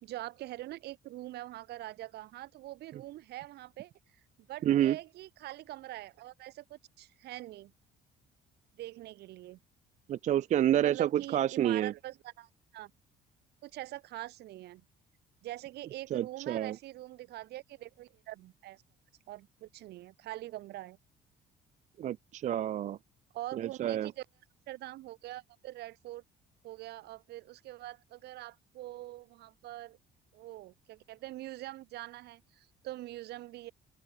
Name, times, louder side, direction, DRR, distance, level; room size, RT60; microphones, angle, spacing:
voice 1, 0.0-3.9 4.5-7.7 8.8-9.6 10.8-12.9 13.6-14.8 15.4-18.8 19.3-21.0 23.3-24.2 24.7-26.2 26.6-30.0 30.3-33.7, right 16 dB, 75° right, 2.8 m, -44 dB
voice 2, 4.6-5.0 10.1-11.9 16.1-16.8 22.0-23.0 23.5-24.1, right 11 dB, 45° right, 0.4 m, -28 dB
open air
cardioid pair, 110°, 17 cm